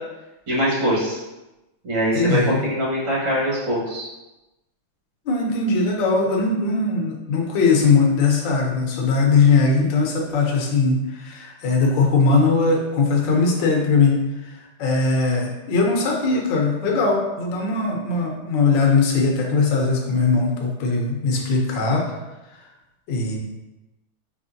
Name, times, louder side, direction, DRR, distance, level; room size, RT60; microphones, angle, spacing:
voice 1, 0.5-1.2 1.8-4.0, equal, 65° right, -7 dB, 2.5 m, -22 dB
voice 2, 2.1-2.6 5.3-22.2 22.5-22.7 23.1-23.4, left 4 dB, 65° left, 0 dB, 1.4 m, -20 dB
5.6 x 3.2 x 2.6 m, 1.0 s
omnidirectional pair, 2.3 m